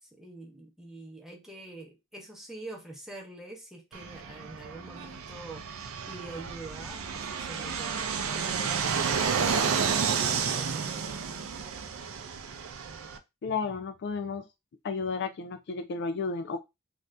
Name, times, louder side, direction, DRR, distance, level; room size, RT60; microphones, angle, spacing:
voice 1, 0.0-5.6 6.1-9.2 10.0-12.0, right 2 dB, ahead, 0.8 m, -46 dB
Fixed-wing aircraft airplane, 3.9-13.2, right 6 dB, 85° right, 0.5 m, -31 dB
voice 2, 13.4-14.4 14.8-16.6, left 4 dB, 55° left, 0.4 m, -32 dB
2.7 x 2.5 x 3.3 m
head